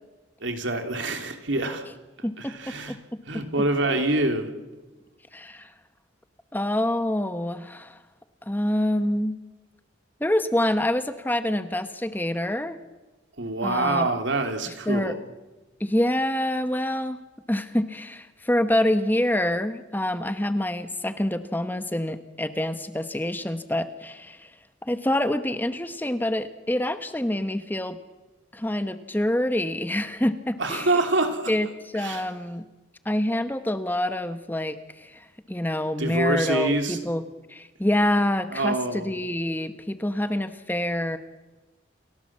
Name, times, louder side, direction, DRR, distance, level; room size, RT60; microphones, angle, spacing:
voice 1, 0.4-1.8 2.4-3.0 3.3-4.5 13.4-15.2 30.6-31.5 32.0-32.3 36.0-37.0 38.5-39.2, right 2 dB, 75° right, 5 dB, 3.1 m, -26 dB
voice 2, 5.3-5.7 6.5-8.0 8.4-9.3 10.2-12.8 13.6-14.1 14.9-15.2 15.8-17.2 17.5-24.5 24.9-28.0 28.5-30.9 31.5-31.7 31.9-32.6 33.0-37.2 37.5-41.2, left 1 dB, 10° left, 10 dB, 1.0 m, -26 dB
29.0 x 17.0 x 7.4 m, 1.1 s
head